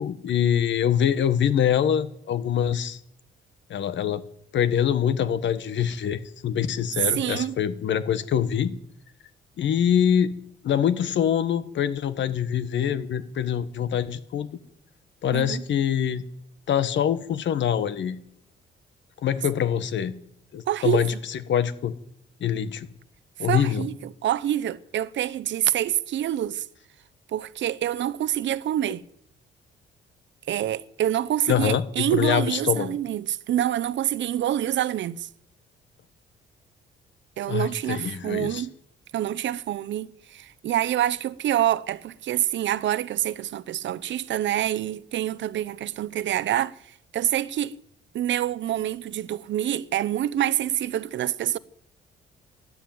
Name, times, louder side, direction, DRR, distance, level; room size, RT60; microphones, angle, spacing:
voice 1, 0.0-3.0 3.7-4.2 4.5-8.8 9.6-10.3 10.6-14.5 15.2-16.2 16.7-18.2 19.2-20.1 20.5-21.9 22.4-22.9 23.4-23.8 31.5-33.0 37.5-38.7, left 9 dB, 65° left, 1.4 m, -24 dB
voice 2, 7.2-7.6 15.3-15.6 20.7-21.0 23.5-26.7 27.3-29.0 30.5-35.3 37.4-38.7 39.1-46.7 47.1-47.7 48.1-51.6, right 11 dB, 70° right, 0.8 m, -26 dB
13.0 x 12.0 x 9.3 m
cardioid pair, 90°, 20 cm